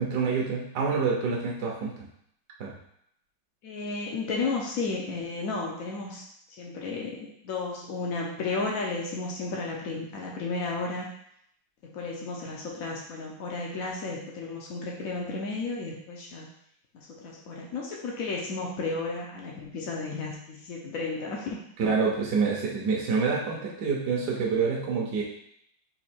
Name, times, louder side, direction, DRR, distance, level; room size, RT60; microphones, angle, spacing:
voice 1, 0.0-1.9 2.6-2.7 21.8-25.2, right 5 dB, 65° right, -2 dB, 1.1 m, -27 dB
voice 2, 3.6-6.2 6.6-11.1 11.8-16.5 16.9-21.6, left 3 dB, 90° left, -2 dB, 0.7 m, -33 dB
4.4 x 2.7 x 4.3 m, 0.71 s
omnidirectional pair, 2.3 m